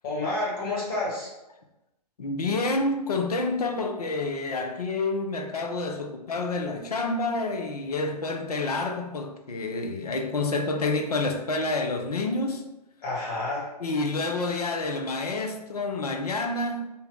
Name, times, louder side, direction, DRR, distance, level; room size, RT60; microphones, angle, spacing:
voice 1, 0.0-1.3 13.0-13.7, left 2 dB, 35° left, 1.2 m, -29 dB
voice 2, 2.2-12.7 13.8-16.8, left 3 dB, 65° left, 0.5 m, -28 dB
2.7 x 2.1 x 3.6 m
figure-of-eight pair, 125°, 21 cm